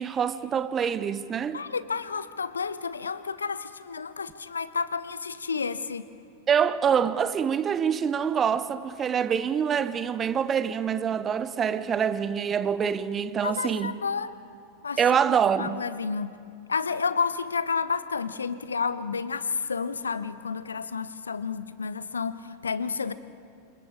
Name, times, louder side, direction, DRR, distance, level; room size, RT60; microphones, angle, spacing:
voice 1, 0.0-1.6 6.5-13.9 15.0-15.8, right 7 dB, 25° right, 0.8 m, -25 dB
voice 2, 1.5-6.1 13.4-14.4 14.8-15.2 15.6-16.4 16.7-23.1, left 5 dB, 75° left, 0.8 m, -30 dB
28.5 x 26.0 x 5.0 m
figure-of-eight pair, 90°, 0 cm